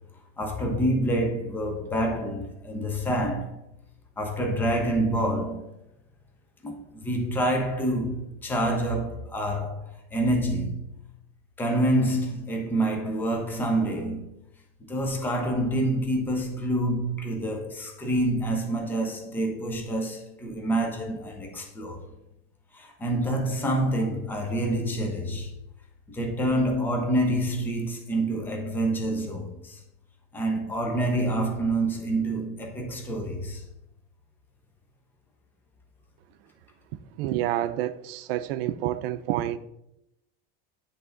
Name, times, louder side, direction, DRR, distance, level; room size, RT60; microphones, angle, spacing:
voice 1, 0.4-3.6 4.2-5.7 6.6-9.8 10.1-10.9 11.6-14.3 14.8-22.0 22.7-25.5 26.1-29.8 30.3-33.6, right 1 dB, 5° left, 0.6 m, -27 dB
voice 2, 37.2-39.6, right 13 dB, 80° right, 0.5 m, -28 dB
10.0 x 3.5 x 3.8 m
cardioid pair, 170°, 29 cm